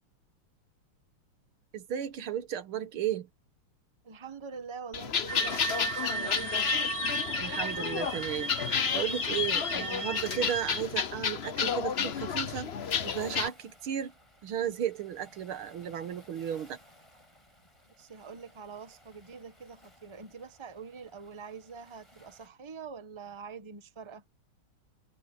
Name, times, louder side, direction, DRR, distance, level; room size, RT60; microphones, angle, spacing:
voice 1, 1.7-3.3 7.4-8.5 8.9-12.7 13.0-14.1 14.4-16.8, right 9 dB, 80° right, 2.1 m, -34 dB
voice 2, 4.0-6.6 18.0-24.2, right 5 dB, 15° right, 1.1 m, -45 dB
sound 1, 4.9-13.5, left 7 dB, 55° left, 0.7 m, -31 dB
sound 2, 5.3-10.8, right 5 dB, 45° right, 1.6 m, -37 dB
Waves surf, 6.1-22.5, left 1 dB, 15° left, 5.2 m, -60 dB
omnidirectional pair, 2.3 m